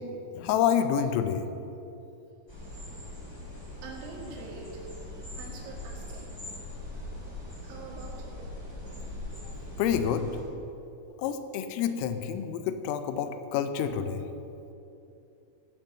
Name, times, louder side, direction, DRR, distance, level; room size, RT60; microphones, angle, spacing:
voice 1, 0.4-1.5 9.8-10.3 11.2-14.3, left 8 dB, 85° left, 9 dB, 3.3 m, -28 dB
sound 1, 2.5-10.4, left 1 dB, 10° left, 1.7 m, -41 dB
voice 2, 3.8-4.8 5.1-6.4 6.9-7.0 7.6-8.5, right 3 dB, 80° right, -3 dB, 4.9 m, -45 dB
16.0 x 5.5 x 7.4 m, 2.8 s
omnidirectional pair, 6.0 m